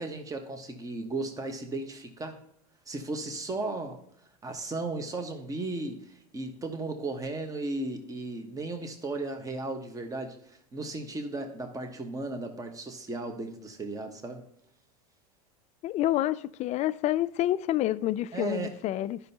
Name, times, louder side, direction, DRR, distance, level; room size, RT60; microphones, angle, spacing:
voice 1, 0.0-2.4 2.9-4.0 4.4-6.0 6.3-14.4 18.3-18.7, right 2 dB, 20° right, 1.2 m, -35 dB
voice 2, 15.8-19.2, left 14 dB, 35° left, 0.4 m, -28 dB
12.0 x 5.6 x 2.8 m
hypercardioid pair, 100°, 19 cm